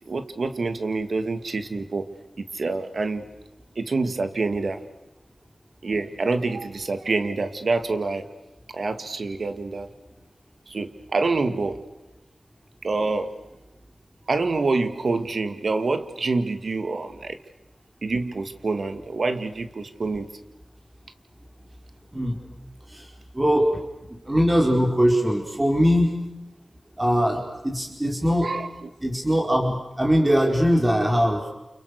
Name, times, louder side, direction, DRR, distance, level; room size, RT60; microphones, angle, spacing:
voice 1, 0.1-2.1 2.4-3.3 3.8-4.8 5.8-8.3 8.7-9.9 10.7-11.8 12.8-13.3 14.3-17.4 18.0-20.3 28.4-28.7, right 3 dB, 70° right, 10 dB, 2.3 m, -26 dB
voice 2, 22.9-23.8 24.1-26.2 27.0-28.5 29.0-31.5, equal, 20° right, 1 dB, 4.3 m, -21 dB
30.0 x 28.5 x 6.7 m, 0.97 s
cardioid pair, 45°, 0 cm